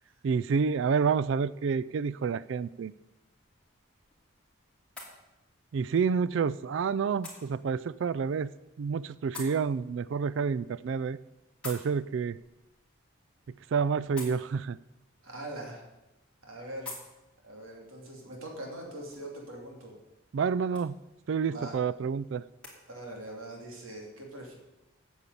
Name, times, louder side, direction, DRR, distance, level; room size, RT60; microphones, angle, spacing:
voice 1, 0.2-2.9 5.7-8.5 8.8-11.2 11.6-12.4 13.7-14.8 20.3-21.0 21.3-22.4, right 6 dB, 60° right, 18 dB, 0.3 m, -29 dB
sound 1, 3.3-22.8, left 3 dB, 5° left, 2.8 m, -52 dB
voice 2, 15.2-15.9 16.4-17.0 17.4-20.0 21.4-21.8 22.9-24.6, right 1 dB, 80° right, 0 dB, 2.9 m, -42 dB
9.2 x 7.2 x 8.3 m, 0.99 s
head